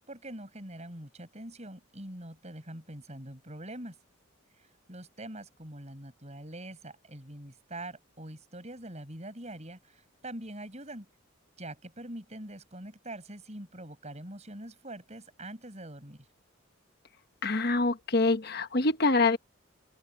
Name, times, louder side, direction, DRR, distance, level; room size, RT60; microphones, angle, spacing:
voice 1, 0.0-4.0 4.6-11.1 11.6-16.3, right 1 dB, 35° right, 6.0 m, -44 dB
voice 2, 17.4-19.4, left 3 dB, 50° left, 1.2 m, -25 dB
open air
head